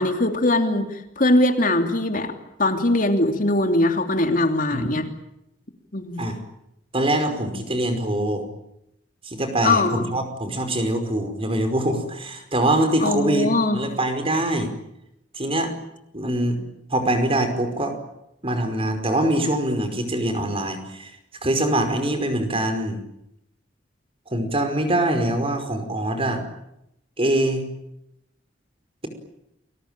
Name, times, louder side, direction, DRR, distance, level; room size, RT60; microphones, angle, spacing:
voice 1, 0.0-2.3 2.6-5.1 5.9-6.3 9.6-10.0 13.0-13.8, left 2 dB, 50° left, 6 dB, 3.1 m, -21 dB
voice 2, 6.9-8.5 9.3-14.7 15.3-15.7 16.1-16.6 16.9-17.9 18.4-21.1 21.4-23.0 24.3-26.4 27.2-27.7, right 1 dB, 30° right, 7 dB, 5.2 m, -23 dB
30.0 x 21.0 x 9.1 m, 0.82 s
head